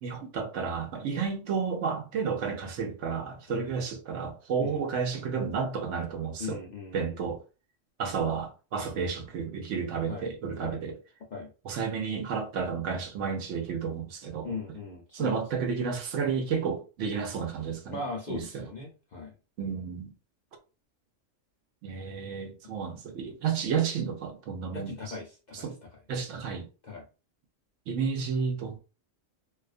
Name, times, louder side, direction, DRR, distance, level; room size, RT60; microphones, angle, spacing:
voice 1, 0.0-6.6 6.9-7.4 8.0-11.0 11.6-14.8 15.1-18.0 18.3-18.7 19.6-20.1 21.8-25.1 25.5-25.8 26.1-26.7 27.9-28.8, right 6 dB, 75° right, 0.9 m, -31 dB
voice 2, 6.4-7.2 10.1-10.3 10.6-10.8 11.3-11.5 14.4-15.3 17.9-19.3 24.7-25.7 26.8-27.0, left 4 dB, 60° left, 0.4 m, -39 dB
2.3 x 2.3 x 2.4 m
omnidirectional pair, 1.3 m